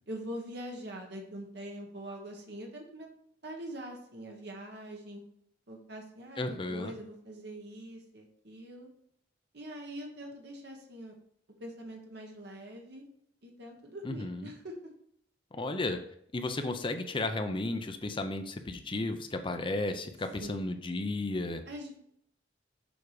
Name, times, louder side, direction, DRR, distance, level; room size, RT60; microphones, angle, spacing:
voice 1, 0.1-3.1 3.4-5.2 5.7-8.9 9.5-11.1 11.6-13.1 13.4-14.7 20.4-20.7 21.7-22.0, equal, 65° right, 1 dB, 1.4 m, -43 dB
voice 2, 6.4-6.9 14.0-14.5 15.5-16.0 16.3-21.6, left 2 dB, 30° left, 7 dB, 0.6 m, -33 dB
7.1 x 4.8 x 4.8 m, 0.70 s
head